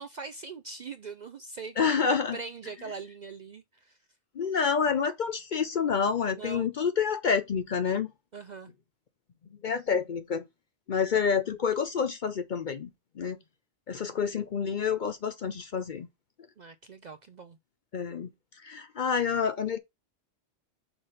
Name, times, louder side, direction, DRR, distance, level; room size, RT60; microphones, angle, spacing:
voice 1, 0.0-2.0 2.3-4.0 6.3-6.7 8.3-8.7 16.6-17.6, right 4 dB, 55° right, 0.5 m, -42 dB
voice 2, 1.8-2.4 4.4-8.1 9.6-10.4 10.9-12.9 13.2-13.4 13.9-16.1 17.9-18.3 18.6-19.8, left 6 dB, 55° left, 0.6 m, -28 dB
6.0 x 3.4 x 5.4 m
omnidirectional pair, 1.2 m